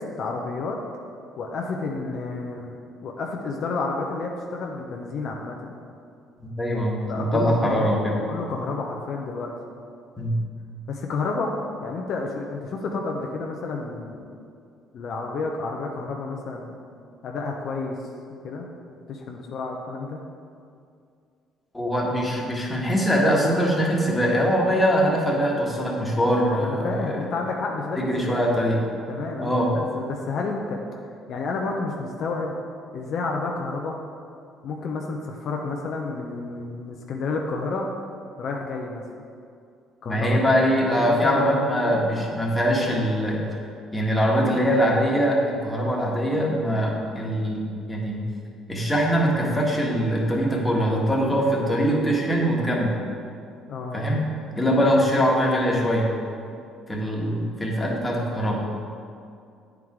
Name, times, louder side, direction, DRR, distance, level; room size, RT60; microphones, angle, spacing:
voice 1, 0.2-0.8 1.4-5.8 7.1-9.5 10.9-11.5 11.8-14.3 14.9-16.8 17.2-18.0 18.4-18.7 19.1-20.2 26.6-28.5 29.1-30.8 31.3-32.5 32.9-34.0 34.6-37.9 38.4-39.0 40.0-40.4 41.0-42.1 53.7-54.0, left 3 dB, 60° left, 0 dB, 0.7 m, -30 dB
voice 2, 6.4-8.2 10.2-10.4 21.7-27.2 28.0-28.8 29.4-29.8 40.0-43.4 43.9-47.6 47.9-48.2 48.7-53.0 53.9-54.3 54.6-56.1 56.9-58.6, equal, 10° left, -3 dB, 1.5 m, -22 dB
9.0 x 4.6 x 3.7 m, 2.4 s
supercardioid pair, 85°, 0 cm